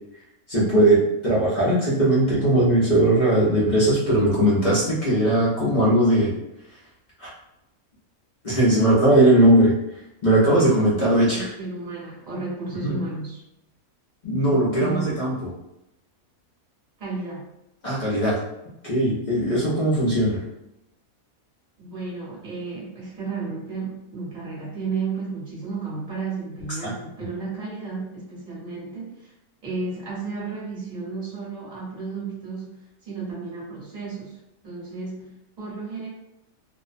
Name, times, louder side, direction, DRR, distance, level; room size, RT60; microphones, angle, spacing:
voice 1, 0.5-6.3 7.2-7.3 8.4-9.7 10.2-11.5 12.8-13.0 14.2-15.3 17.8-18.4 18.8-20.4 26.8-26.9, right 1 dB, 45° left, -8 dB, 0.6 m, -19 dB
voice 2, 11.3-13.4 14.5-15.2 17.0-17.5 21.8-29.3 29.6-34.4 34.6-36.1, right 3 dB, 35° right, -6 dB, 1.0 m, -33 dB
2.5 x 2.1 x 2.4 m, 0.86 s
omnidirectional pair, 1.5 m